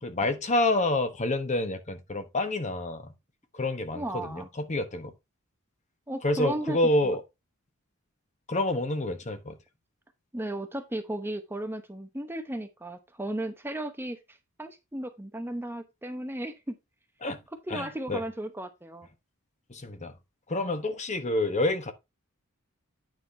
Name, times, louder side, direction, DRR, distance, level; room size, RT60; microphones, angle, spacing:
voice 1, 0.0-3.1 3.5-5.1 6.2-7.2 8.5-9.6 17.2-17.4 17.7-18.2 19.7-20.1 20.5-21.9, left 2 dB, 35° left, 1.1 m, -28 dB
voice 2, 3.9-4.5 6.1-6.8 7.0-7.2 10.3-16.7 17.7-19.1, right 1 dB, 10° right, 0.8 m, -35 dB
9.3 x 5.7 x 3.3 m
head